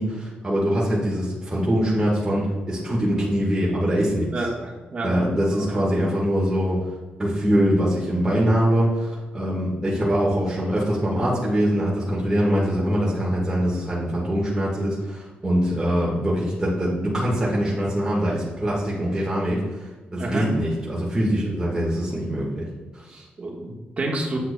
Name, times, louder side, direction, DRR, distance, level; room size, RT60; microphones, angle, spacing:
voice 1, 0.0-4.3 5.0-6.8 7.2-23.3, equal, 20° right, -6 dB, 1.4 m, -23 dB
voice 2, 4.3-5.1 5.5-5.8 20.2-20.5 23.4-24.4, right 2 dB, 40° right, -2 dB, 1.3 m, -29 dB
8.1 x 5.7 x 2.2 m, 1.2 s
cardioid pair, 85°, 3 cm